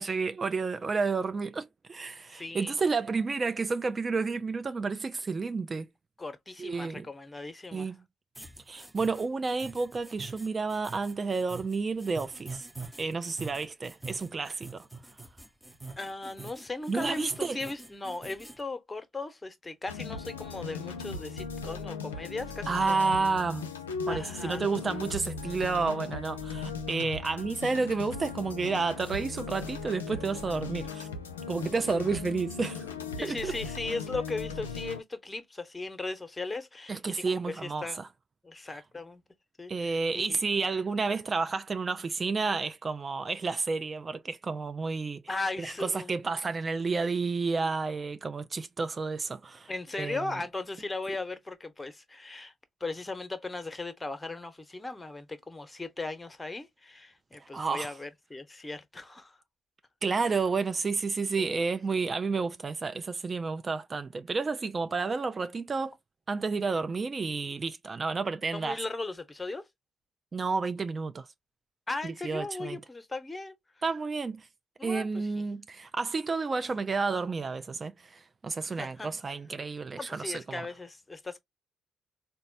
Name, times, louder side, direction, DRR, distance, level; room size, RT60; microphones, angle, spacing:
voice 1, 0.0-5.9 6.6-7.1 7.7-8.0 8.7-12.7 13.0-14.9 16.9-17.6 22.7-23.7 24.1-31.1 31.5-32.8 33.2-33.5 36.9-38.1 39.7-45.2 45.6-49.7 50.0-50.2 57.4-57.9 60.0-65.9 66.3-68.8 70.3-71.3 72.0-72.8 73.8-74.5 74.8-80.7, right 4 dB, 35° right, 0.3 m, -31 dB
voice 2, 2.3-2.7 6.2-7.9 16.0-23.2 24.1-24.6 33.2-38.0 38.4-39.2 39.6-40.4 45.3-46.1 49.7-52.5 52.8-59.4 60.2-60.3 61.4-61.5 68.5-69.7 71.9-73.5 74.8-75.4 78.6-79.1 80.0-81.4, left 3 dB, 20° left, 0.9 m, -38 dB
sound 1, 8.3-18.6, right 3 dB, 10° right, 0.8 m, -45 dB
sound 2, 19.9-35.0, left 5 dB, 85° left, 0.4 m, -38 dB
4.0 x 2.2 x 2.6 m
figure-of-eight pair, 40°, 0 cm